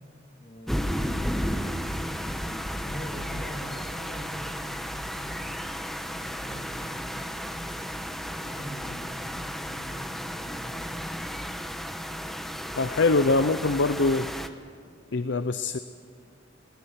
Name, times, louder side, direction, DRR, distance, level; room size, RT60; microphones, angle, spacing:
voice 1, 0.4-1.5 2.1-5.6 5.9-7.8 8.3-11.2, equal, 30° left, -1 dB, 2.4 m, -44 dB
sound 1, 0.7-14.5, equal, ahead, 1.1 m, -33 dB
voice 2, 12.8-14.3 15.1-15.8, left 3 dB, 65° left, 12 dB, 0.7 m, -23 dB
22.0 x 18.5 x 9.7 m, 2.2 s
head